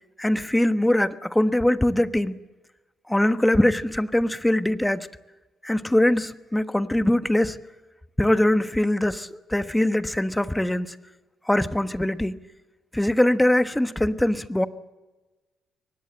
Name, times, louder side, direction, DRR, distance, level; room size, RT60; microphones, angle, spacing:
voice 1, 0.2-2.4 3.1-5.1 5.6-7.6 8.2-10.9 11.5-12.4 12.9-14.7, left 1 dB, 10° left, 11 dB, 1.3 m, -22 dB
23.5 x 19.0 x 7.6 m, 1.2 s
hypercardioid pair, 50°, 0 cm